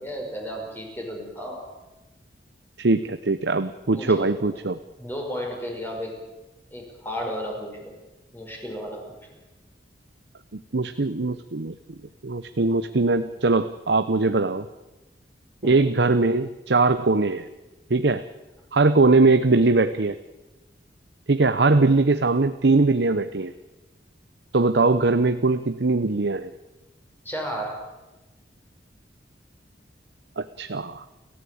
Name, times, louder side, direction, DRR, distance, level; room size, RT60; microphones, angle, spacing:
voice 1, 0.0-1.7 3.9-4.5 5.0-6.2 6.7-7.9 8.3-9.2 15.6-15.9 27.2-27.8, equal, 10° left, 1 dB, 5.6 m, -33 dB
voice 2, 2.8-4.8 10.5-11.7 12.2-14.7 15.6-17.5 17.9-18.2 18.7-20.2 21.3-23.5 24.5-26.5 30.4-31.0, right 3 dB, 70° right, 10 dB, 0.8 m, -21 dB
29.5 x 14.5 x 8.7 m, 1.1 s
head